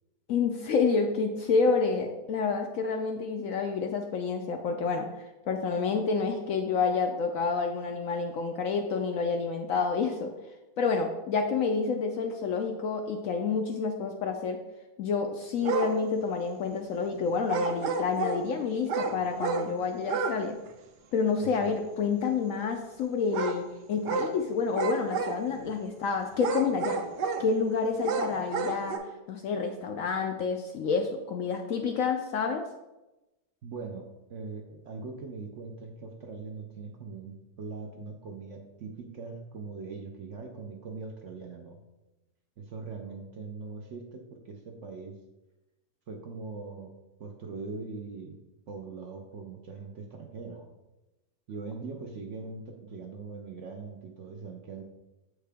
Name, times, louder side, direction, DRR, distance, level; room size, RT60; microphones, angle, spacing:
voice 1, 0.3-10.3 10.8-14.6 15.0-20.6 21.1-27.0 27.4-29.0 29.3-32.6, left 5 dB, 70° left, 4 dB, 0.8 m, -29 dB
sound 1, 15.6-15.9 17.5-18.4 18.9-19.7 20.0-20.4 20.7-20.8 23.3-23.6 24.0-24.3 24.7-25.6 26.3-27.5 28.0-29.0, right 5 dB, 90° right, 1.3 m, -30 dB
voice 2, 21.4-21.8 33.6-41.8 42.6-45.2 46.1-46.9 47.2-48.4 48.7-50.7 51.5-54.8, right 4 dB, 60° right, 3 dB, 0.8 m, -41 dB
7.3 x 4.7 x 3.4 m, 1.0 s
omnidirectional pair, 1.8 m